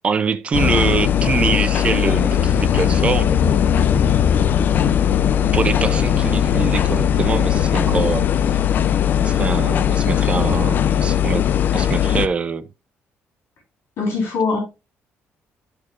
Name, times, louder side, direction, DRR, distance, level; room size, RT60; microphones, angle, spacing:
voice 1, 0.0-3.3 5.5-8.6 9.2-11.5 11.7-12.7, right 5 dB, 25° right, 0.4 m, -24 dB
sound 1, 0.5-12.3, left 9 dB, 40° left, 0.4 m, -18 dB
sound 2, 2.0-8.9, left 4 dB, 5° right, 1.7 m, -32 dB
voice 2, 14.0-14.6, left 4 dB, 65° left, 3.6 m, -21 dB
11.5 x 4.4 x 2.4 m
cardioid pair, 180°, 5 cm